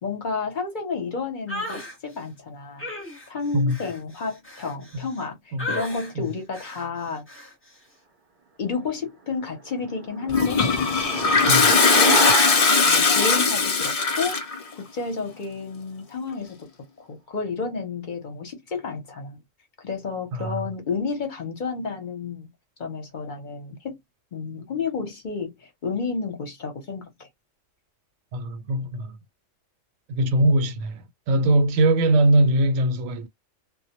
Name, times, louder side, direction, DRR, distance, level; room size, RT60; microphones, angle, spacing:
voice 1, 0.0-2.9 3.3-7.3 8.6-10.8 11.6-12.5 12.9-14.4 14.8-16.6 17.1-19.4 19.8-22.5 22.8-24.0 24.3-25.5 25.8-27.3, left 4 dB, 45° left, 0.7 m, -31 dB
sound 1, 1.5-2.0 2.8-5.2 5.6-6.1 6.5-6.9 7.3-7.5, left 1 dB, 10° left, 0.7 m, -35 dB
sound 2, 9.6-14.4, right 3 dB, 55° right, 0.6 m, -30 dB
Toilet flush, 10.3-14.6, left 4 dB, 70° left, 0.3 m, -19 dB
voice 2, 20.3-20.6 28.3-29.2 30.1-33.3, right 1 dB, 80° right, 1.0 m, -21 dB
2.1 x 2.1 x 2.8 m
omnidirectional pair, 1.4 m